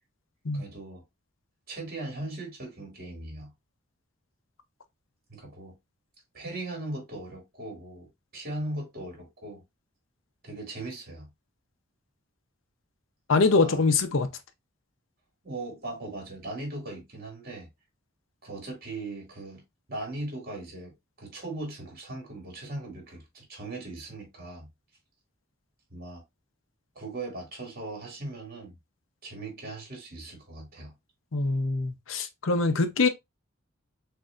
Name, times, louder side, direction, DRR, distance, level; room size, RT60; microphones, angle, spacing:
voice 1, 0.5-1.0 1.7-3.5 5.3-5.7 6.3-9.6 10.4-11.3 13.4-13.8 15.4-17.7 18.4-19.6 19.9-20.9 21.2-24.7 25.9-26.2 27.0-28.7 29.2-30.9, right 2 dB, 50° right, 2.3 m, -39 dB
voice 2, 13.3-14.3 31.3-33.1, left 3 dB, 75° left, 0.7 m, -24 dB
6.4 x 2.7 x 2.5 m
head